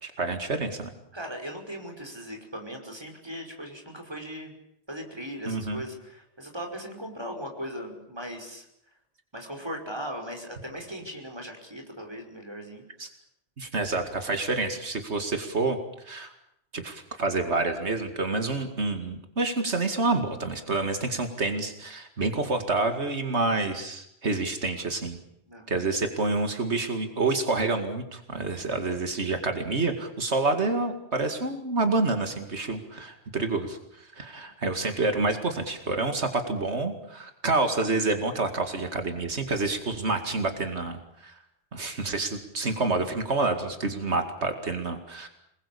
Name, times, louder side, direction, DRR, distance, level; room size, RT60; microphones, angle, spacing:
voice 1, 0.0-0.9 5.5-5.8 13.0-13.1 13.6-15.8 16.0-16.3 16.7-25.2 25.7-41.3 41.7-45.3, right 3 dB, 80° right, 6 dB, 2.6 m, -28 dB
voice 2, 1.1-4.5 4.9-8.7 9.3-12.8 25.5-25.8, equal, 25° right, 3 dB, 5.4 m, -38 dB
27.5 x 20.5 x 8.6 m, 0.76 s
omnidirectional pair, 1.1 m